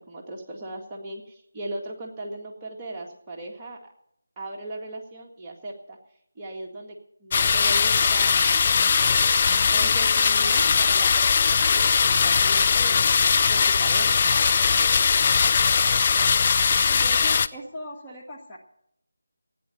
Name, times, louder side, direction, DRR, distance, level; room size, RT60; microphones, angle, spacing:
voice 1, 0.0-3.8 4.4-6.0 6.4-8.6 9.7-14.2, right 1 dB, 15° right, -3 dB, 1.8 m, -38 dB
sound 1, 7.3-17.5, left 5 dB, 30° left, 0.5 m, -20 dB
voice 2, 16.9-18.6, equal, 10° left, -5 dB, 1.7 m, -39 dB
16.0 x 9.7 x 6.8 m, 0.76 s
figure-of-eight pair, 160°, 0 cm